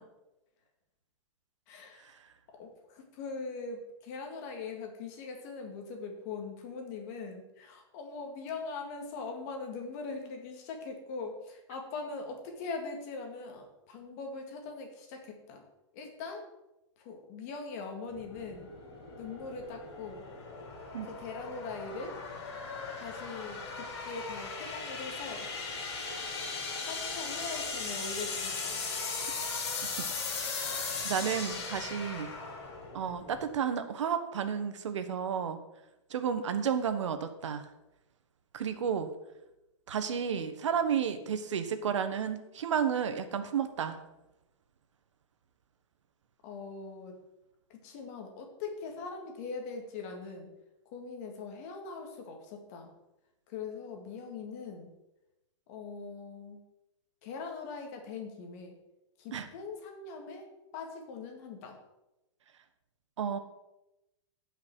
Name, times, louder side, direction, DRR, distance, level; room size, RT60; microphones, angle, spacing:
voice 1, 1.7-2.2 2.6-15.6 15.9-16.4 17.0-18.7 19.2-20.2 21.0-22.2 23.0-25.5 26.9-28.8 46.4-47.2 47.7-50.5 50.9-52.9 53.5-54.9 55.7-56.6 57.2-58.8 59.2-60.5 60.7-61.8, left 4 dB, 35° left, 3 dB, 2.0 m, -41 dB
sound 1, 18.1-33.5, left 4 dB, 55° left, 3.5 m, -38 dB
voice 2, 31.0-32.3 32.9-35.6 36.1-37.7 38.5-39.1 39.9-44.0 59.3-59.5 63.2-63.4, right 7 dB, 75° right, 10 dB, 1.3 m, -32 dB
15.5 x 5.9 x 4.7 m, 0.94 s
hypercardioid pair, 170°, 16 cm